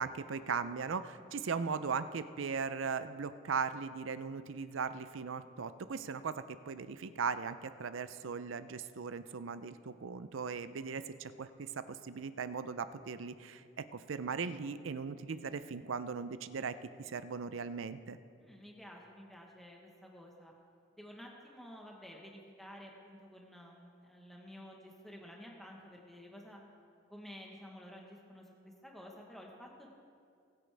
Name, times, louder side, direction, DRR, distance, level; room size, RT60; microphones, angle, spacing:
voice 1, 0.0-6.3 6.7-13.6 13.9-18.2, right 5 dB, 85° right, 12 dB, 0.5 m, -38 dB
voice 2, 18.4-20.5 20.9-26.6 27.1-29.9, equal, ahead, -1 dB, 1.2 m, -52 dB
21.0 x 9.1 x 3.4 m, 2.3 s
head